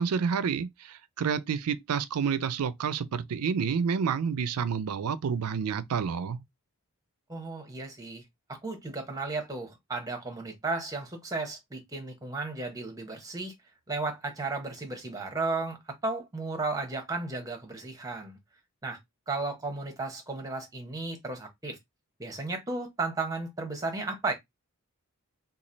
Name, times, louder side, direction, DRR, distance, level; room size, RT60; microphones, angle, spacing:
voice 1, 0.0-6.4, right 6 dB, 85° right, 0.4 m, -29 dB
voice 2, 7.3-8.2 8.5-13.5 13.9-18.4 18.8-19.0 19.3-21.8 22.2-24.3, right 3 dB, 15° right, 0.9 m, -34 dB
3.0 x 2.4 x 3.9 m
head